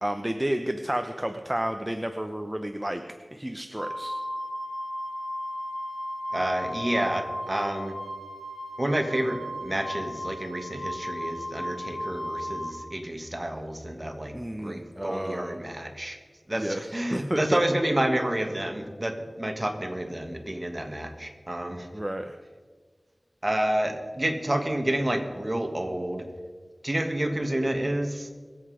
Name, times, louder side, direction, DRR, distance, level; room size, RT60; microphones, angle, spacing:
voice 1, 0.0-3.0 3.3-4.2 14.3-15.6 16.5-16.8 17.1-17.6 21.9-22.4, right 1 dB, 15° right, 6 dB, 0.7 m, -31 dB
Wind instrument woodwind instrument, 3.8-12.7, equal, 10° left, 3.9 m, -35 dB
voice 2, 6.3-7.9 8.8-16.2 16.5-21.9 23.4-26.3 26.8-28.4, right 1 dB, 35° right, 5 dB, 1.7 m, -29 dB
22.5 x 8.0 x 5.0 m, 1.5 s
wide cardioid pair, 55°, 0 cm